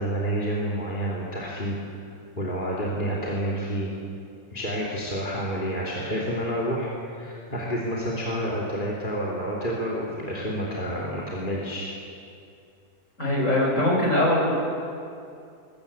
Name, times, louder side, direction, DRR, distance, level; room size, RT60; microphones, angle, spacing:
voice 1, 0.0-1.8 2.4-3.9 4.5-11.9, equal, 30° left, -4 dB, 3.2 m, -29 dB
voice 2, 13.2-14.5, left 1 dB, 50° left, -3 dB, 7.2 m, -22 dB
23.0 x 21.0 x 8.6 m, 2.5 s
omnidirectional pair, 1.7 m